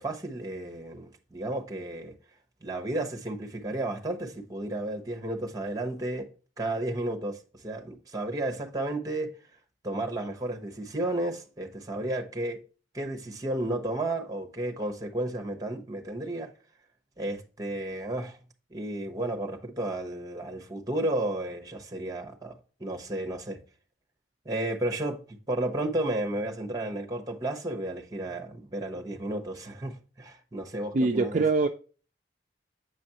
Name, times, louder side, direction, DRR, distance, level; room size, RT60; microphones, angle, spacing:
voice 1, 0.0-2.1 2.6-6.3 6.6-9.3 9.8-12.6 12.9-16.5 17.2-18.4 18.7-23.6 24.4-31.4, right 1 dB, 20° right, 1.0 m, -33 dB
voice 2, 30.9-31.7, right 3 dB, 40° right, 0.4 m, -23 dB
8.1 x 5.1 x 2.9 m
head